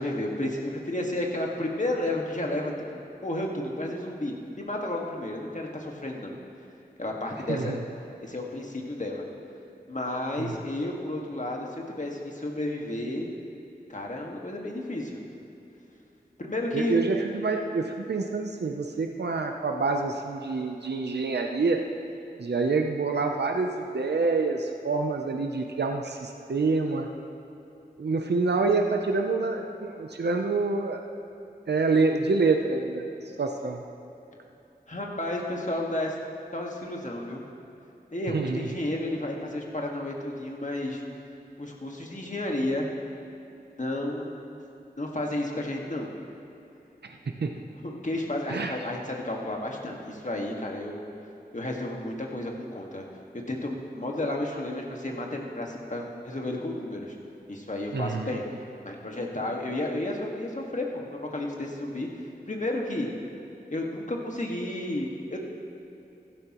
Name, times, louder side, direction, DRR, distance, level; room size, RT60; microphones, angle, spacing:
voice 1, 0.0-6.4 7.0-7.8 8.2-9.2 9.9-13.3 13.9-15.2 16.4-17.0 34.9-36.2 36.5-37.4 38.1-41.0 41.6-42.9 43.8-44.6 45.0-46.1 47.8-51.0 51.5-53.0 53.5-57.1 57.5-58.5 58.8-62.1 62.5-63.1 63.7-65.4, left 1 dB, 50° left, 0 dB, 1.7 m, -32 dB
voice 2, 7.5-7.8 10.4-10.5 16.7-21.9 22.4-27.1 28.0-31.0 31.7-33.0 33.4-33.8 38.3-38.7 47.4-47.5 48.5-48.7 57.9-58.3, right 3 dB, 90° right, 3 dB, 0.7 m, -27 dB
15.5 x 12.0 x 3.0 m, 3.0 s
wide cardioid pair, 45°, 17 cm